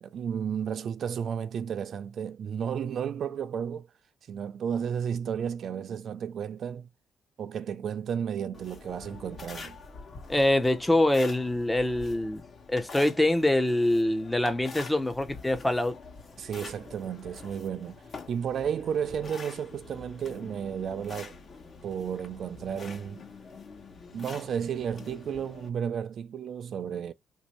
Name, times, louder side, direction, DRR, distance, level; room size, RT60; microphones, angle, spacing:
voice 1, 0.0-3.9 4.3-6.9 7.4-9.8 16.4-21.4 21.8-23.2 24.1-27.1, right 8 dB, 60° right, 0.3 m, -33 dB
sound 1, 8.5-25.7, left 4 dB, 45° left, 1.0 m, -46 dB
voice 2, 10.3-12.4 12.7-16.0, left 1 dB, 10° left, 0.6 m, -24 dB
3.2 x 2.7 x 3.0 m
cardioid pair, 90°, 0 cm